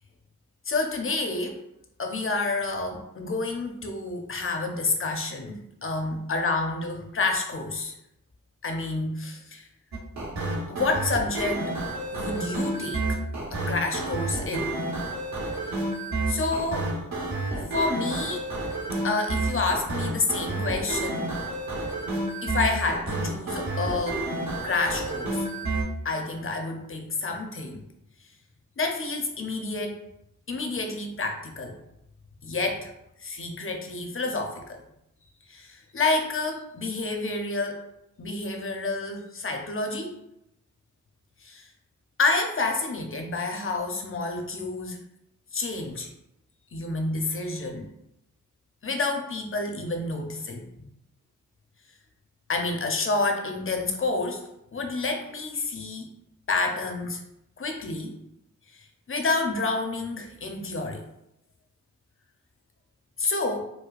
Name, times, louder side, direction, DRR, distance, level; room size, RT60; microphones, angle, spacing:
voice 1, 0.6-1.6 2.0-7.9 8.6-9.7 10.7-11.7 12.1-13.2 13.5-14.7 15.7-15.8 16.3-16.9 17.7-18.4 19.0-21.3 22.4-24.2 24.6-25.5 26.0-27.8 28.8-30.0 30.5-31.8 32.4-32.9 33.2-34.8 35.5-37.8 38.2-40.1 41.4-41.7 42.2-45.0 45.5-46.1 46.7-47.9 48.8-50.6 52.5-54.4 54.7-56.1 56.5-57.2 57.6-58.2 59.1-61.0 63.2-63.7, left 3 dB, 40° left, 3 dB, 0.7 m, -29 dB
sound 1, 9.9-25.8, right 2 dB, 60° right, 1.0 m, -30 dB
4.6 x 2.2 x 2.5 m, 0.82 s
cardioid pair, 60°, 32 cm